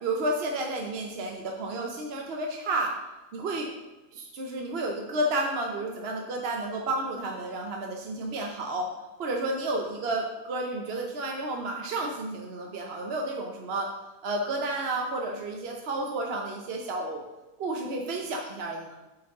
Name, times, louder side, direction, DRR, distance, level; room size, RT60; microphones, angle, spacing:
voice 1, 0.0-2.9 3.3-3.7 4.1-8.9 9.2-13.9 14.2-17.2 17.6-19.0, right 2 dB, 55° right, 1 dB, 0.9 m, -31 dB
7.7 x 6.1 x 3.7 m, 1.1 s
omnidirectional pair, 1.5 m